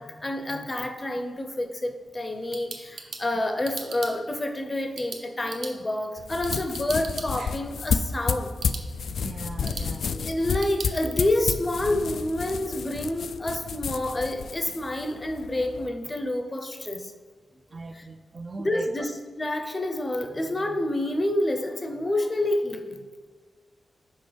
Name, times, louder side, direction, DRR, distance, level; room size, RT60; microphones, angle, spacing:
voice 1, 0.0-8.5 9.6-17.1 17.9-18.0 18.6-19.1 19.4-23.0, left 1 dB, 20° left, 6 dB, 0.6 m, -28 dB
sound 1, 2.2-10.9, right 4 dB, 70° right, 0.8 m, -42 dB
sound 2, 6.2-15.9, left 6 dB, 70° left, 0.3 m, -31 dB
voice 2, 9.2-10.1 17.7-19.1, right 3 dB, 30° right, 7 dB, 0.3 m, -39 dB
6.3 x 5.0 x 5.1 m, 1.5 s
wide cardioid pair, 140°, 0 cm